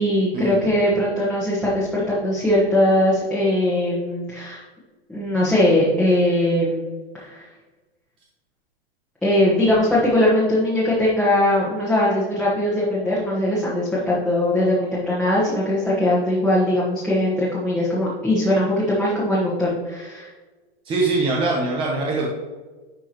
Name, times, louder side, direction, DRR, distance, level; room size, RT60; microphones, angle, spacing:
voice 1, 0.0-4.6 5.1-6.9 7.1-7.5 9.2-20.3, left 1 dB, ahead, -8 dB, 1.3 m, -20 dB
voice 2, 20.9-22.3, right 3 dB, 15° right, -1 dB, 0.8 m, -22 dB
10.5 x 4.6 x 3.0 m, 1.3 s
supercardioid pair, 150°, 32 cm